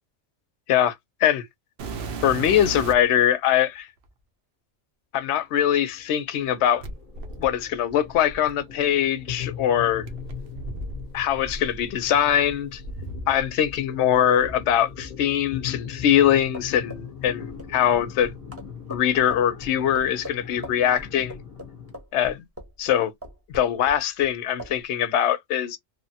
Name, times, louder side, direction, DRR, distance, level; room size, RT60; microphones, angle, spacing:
sound 1, 1.8-3.2 4.0-4.1 6.8-8.9 10.0-13.8 14.1-15.1 15.9-16.0 16.6-16.7 17.4-18.5 18.8-19.3 20.6-20.7, right 3 dB, 65° right, 0.9 m, -37 dB
voice 1, 2.2-3.9 5.1-6.8 7.4-10.0 11.1-12.8 13.3-18.3 18.9-21.4 22.1-22.4 22.8-23.1 23.5-25.8, left 10 dB, 75° left, 0.9 m, -22 dB
sound 2, 5.1-21.9, left 8 dB, 35° left, 0.9 m, -40 dB
sound 3, 16.5-22.9 23.2-24.3 24.6-24.8, equal, 15° right, 0.8 m, -40 dB
3.2 x 2.1 x 2.7 m
omnidirectional pair, 1.2 m